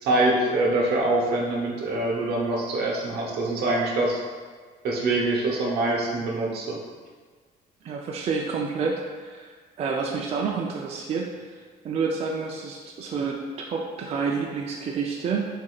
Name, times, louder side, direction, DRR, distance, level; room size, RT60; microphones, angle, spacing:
voice 1, 0.0-4.2 4.8-6.8, right 2 dB, 75° right, -2 dB, 0.9 m, -24 dB
voice 2, 7.8-11.5 11.8-13.4 13.7-15.5, right 5 dB, 35° right, -1 dB, 0.4 m, -29 dB
6.2 x 2.7 x 2.3 m, 1.5 s
cardioid pair, 110°, 17 cm